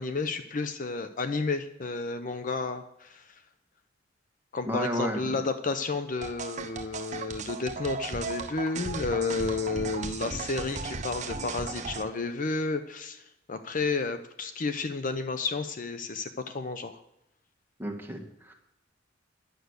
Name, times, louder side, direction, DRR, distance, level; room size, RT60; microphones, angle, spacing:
voice 1, 0.0-3.4 4.5-13.2 13.5-17.0, left 3 dB, 45° left, 9 dB, 0.7 m, -31 dB
voice 2, 4.7-5.4 17.8-18.5, right 1 dB, 10° right, 2 dB, 1.8 m, -32 dB
sound 1, 6.2-12.0, right 4 dB, 40° right, 0.8 m, -36 dB
10.5 x 6.4 x 8.1 m, 0.85 s
head